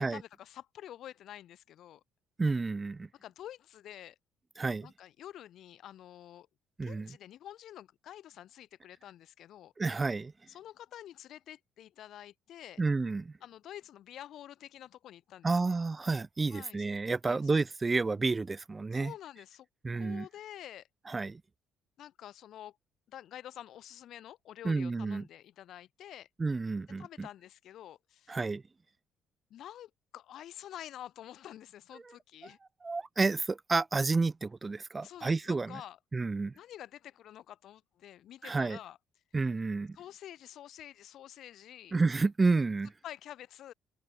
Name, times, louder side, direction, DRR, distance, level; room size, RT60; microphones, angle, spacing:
voice 1, 0.0-2.0 3.1-4.1 4.8-6.5 6.8-9.7 10.5-12.8 13.4-15.7 16.5-16.8 17.2-17.4 18.9-19.7 19.9-20.9 22.0-22.8 23.1-26.3 27.0-28.4 29.5-32.6 35.0-36.0 36.5-39.0 39.9-41.9 43.0-43.7, left 12 dB, 65° left, 1.3 m, -48 dB
voice 2, 2.4-3.1 4.6-4.9 6.8-7.2 9.8-10.3 12.8-13.3 15.4-19.1 19.8-20.3 21.1-21.4 24.6-25.2 26.4-27.3 28.3-28.6 32.8-35.8 36.1-36.5 38.4-38.8 39.3-40.0 41.9-42.9, right 3 dB, 25° right, 0.4 m, -30 dB
hypercardioid pair, 60°, 0 cm